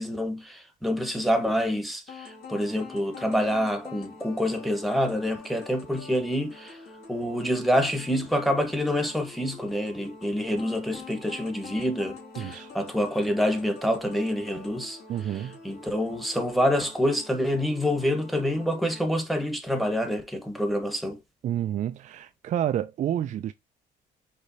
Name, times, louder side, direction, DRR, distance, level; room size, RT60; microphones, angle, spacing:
voice 1, 0.0-6.8 7.1-15.0 15.2-21.2, equal, ahead, 1.1 m, -27 dB
sound 1, 2.1-19.1, left 4 dB, 65° left, 2.3 m, -46 dB
voice 2, 12.4-12.7 15.1-15.6 21.4-23.5, right 11 dB, 45° right, 0.4 m, -29 dB
5.0 x 3.2 x 2.7 m
cardioid pair, 110°, 17 cm